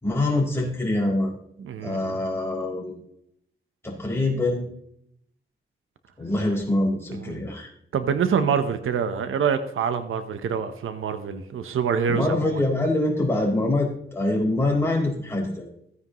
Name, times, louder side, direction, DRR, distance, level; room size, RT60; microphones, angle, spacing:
voice 1, 0.0-1.3 1.8-3.0 3.8-4.7 6.2-7.7 12.1-15.7, left 2 dB, 10° left, -3 dB, 4.3 m, -24 dB
voice 2, 1.6-2.2 7.3-7.4 7.9-12.6, right 6 dB, 85° right, 10 dB, 1.0 m, -26 dB
15.5 x 9.6 x 3.1 m, 0.71 s
wide cardioid pair, 120°, 21 cm